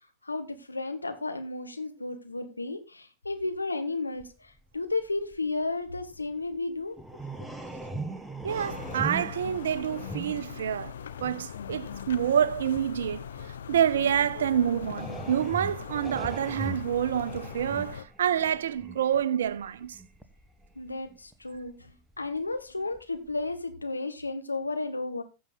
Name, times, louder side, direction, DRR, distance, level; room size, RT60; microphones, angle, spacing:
voice 1, 0.2-7.0 20.7-25.2, left 3 dB, 85° left, 1.6 m, -33 dB
sound 1, 4.2-4.3 4.6-6.6 6.9-23.0 23.3-23.4, right 2 dB, 5° right, 1.3 m, -41 dB
voice 2, 8.4-10.9 11.2-13.3 13.7-20.0, right 9 dB, 65° right, 0.7 m, -27 dB
sound 2, 8.5-18.0, left 8 dB, 65° left, 0.8 m, -41 dB
14.5 x 7.4 x 4.0 m
figure-of-eight pair, 90°, 0 cm